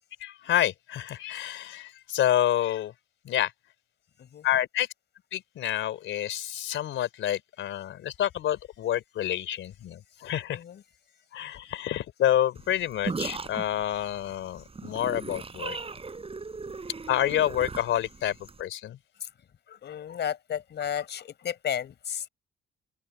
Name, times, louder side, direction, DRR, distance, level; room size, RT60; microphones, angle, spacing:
voice 1, 0.2-2.9 3.2-3.5 4.4-4.9 5.3-10.6 11.3-15.8 17.1-19.0, left 11 dB, 75° left, 3.6 m, -28 dB
sound 1, 12.6-18.6, right 4 dB, 30° right, 4.0 m, -37 dB
voice 2, 19.7-22.2, left 9 dB, 60° left, 4.6 m, -33 dB
cardioid pair, 90°, 20 cm